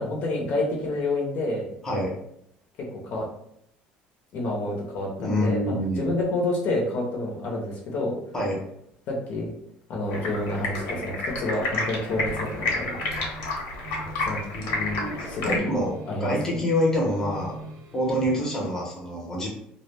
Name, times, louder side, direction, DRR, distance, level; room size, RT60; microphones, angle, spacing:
voice 1, 0.0-1.7 2.8-3.3 4.3-8.2 9.1-9.5 9.9-13.0 14.2-14.4 15.2-15.6 16.1-16.4, left 2 dB, 55° left, -1 dB, 0.7 m, -28 dB
voice 2, 5.2-6.1 8.3-8.6 14.5-15.1 15.4-15.9 16.2-17.5 17.9-19.5, equal, 15° left, -3 dB, 0.7 m, -26 dB
Stream, 10.1-15.6, left 2 dB, 80° left, 0.9 m, -30 dB
sound 1, 12.0-18.7, right 2 dB, 80° right, 0.6 m, -42 dB
2.2 x 2.1 x 3.2 m, 0.73 s
cardioid pair, 150°, 3 cm